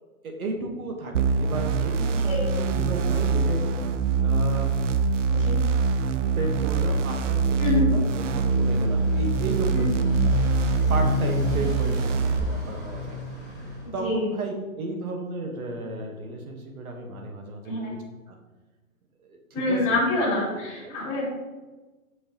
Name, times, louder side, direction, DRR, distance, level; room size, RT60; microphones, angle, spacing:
voice 1, 0.2-3.8 4.2-4.7 6.3-10.5 10.9-13.2 13.9-18.0 18.3-18.4 19.2-20.0 20.5-21.0, right 2 dB, 80° right, 3 dB, 1.5 m, -33 dB
sound 1, 1.1-12.4, right 4 dB, 60° right, 0.5 m, -24 dB
Motorcycle, 8.0-13.9, left 2 dB, 15° right, 2.0 m, -32 dB
voice 2, 13.8-14.3 17.6-17.9 19.5-21.2, left 2 dB, 5° left, -12 dB, 1.3 m, -26 dB
6.5 x 5.5 x 3.0 m, 1.2 s
hypercardioid pair, 175°, 43 cm